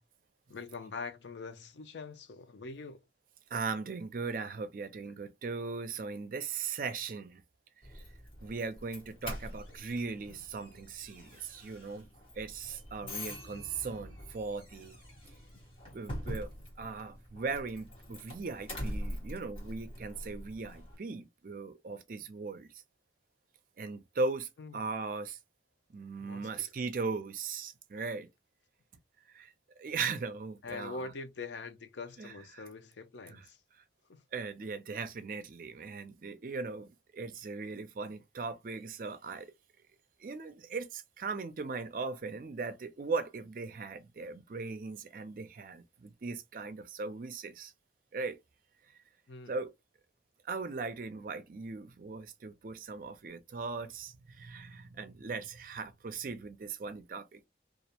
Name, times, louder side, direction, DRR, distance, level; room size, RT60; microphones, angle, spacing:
voice 1, 0.5-3.0 13.0-13.1 24.6-24.8 26.2-26.7 30.6-33.6 34.1-34.2 49.3-49.5, left 4 dB, 80° left, 0.5 m, -44 dB
voice 2, 3.5-7.4 7.9-8.0 8.4-12.1 12.4-15.0 15.9-16.5 16.8-22.7 23.8-25.4 25.9-28.3 29.3-29.5 29.8-31.1 32.2-32.6 33.3-33.5 33.7-33.8 34.3-39.5 40.2-47.7 48.1-48.4 49.5-49.7 50.4-57.5, right 4 dB, 50° right, 0.4 m, -38 dB
Doorbell, 7.8-21.0, equal, 30° left, 1.0 m, -44 dB
2.4 x 2.1 x 2.7 m
head